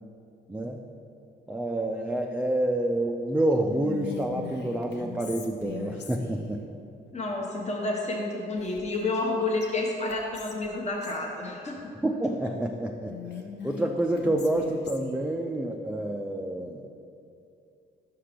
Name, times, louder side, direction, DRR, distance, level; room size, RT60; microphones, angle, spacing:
voice 1, 0.5-0.8 1.5-6.6 11.9-13.1 13.6-16.8, right 1 dB, 5° right, 1 dB, 0.4 m, -28 dB
Whispering, 3.7-6.5 8.6-9.3 9.6-9.7 10.1-11.2 13.1-15.2, left 6 dB, 60° left, 0.7 m, -41 dB
voice 2, 7.1-11.8, left 2 dB, 35° left, -1 dB, 1.0 m, -30 dB
5.8 x 5.7 x 5.0 m, 2.6 s
cardioid pair, 90°, 20 cm